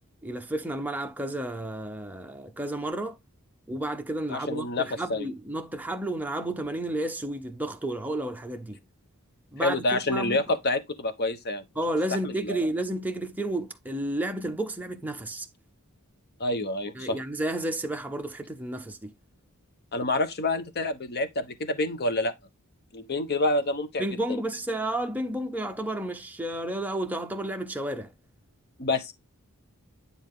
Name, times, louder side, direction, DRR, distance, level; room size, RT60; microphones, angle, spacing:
voice 1, 0.2-3.2 3.7-8.8 9.5-10.4 11.8-15.5 16.9-19.1 24.0-28.1, right 1 dB, 10° right, 0.7 m, -31 dB
voice 2, 4.3-4.8 5.1-5.3 9.6-11.6 12.2-12.6 16.4-17.2 19.9-22.3 22.9-24.4 28.8-29.1, left 2 dB, 50° left, 1.1 m, -28 dB
9.7 x 4.0 x 3.7 m
head